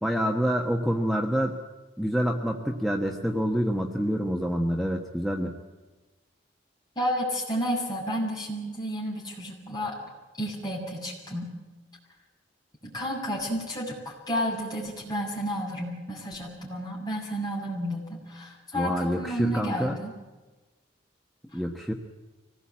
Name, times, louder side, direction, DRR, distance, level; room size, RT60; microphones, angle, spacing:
voice 1, 0.0-1.6 2.0-5.5 18.7-19.9 21.5-21.9, equal, ahead, 0 dB, 1.2 m, -27 dB
voice 2, 7.0-10.0 10.4-11.5 12.8-20.1 21.5-21.6, equal, 20° left, -4 dB, 7.2 m, -31 dB
24.5 x 18.5 x 8.6 m, 1.2 s
head